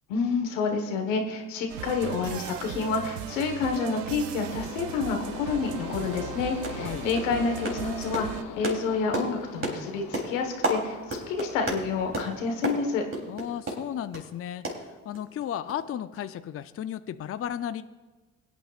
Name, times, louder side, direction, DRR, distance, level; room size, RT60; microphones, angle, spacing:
voice 1, 0.1-8.3 8.6-13.0, left 4 dB, 90° left, 4 dB, 1.5 m, -29 dB
sound 1, 1.7-8.4, right 12 dB, 85° right, 0.6 m, -38 dB
sound 2, 4.5-12.2, left 8 dB, 65° left, 1.0 m, -42 dB
sound 3, 5.7-5.8 6.1-6.3 6.6-6.9 7.2-14.3 14.6-15.4 15.7-15.8 16.2-16.3, right 1 dB, 35° right, 3.5 m, -34 dB
voice 2, 6.8-7.1 13.3-17.8, left 10 dB, 40° left, 11 dB, 0.6 m, -34 dB
21.5 x 9.1 x 2.5 m, 1.2 s
hypercardioid pair, 60°, 37 cm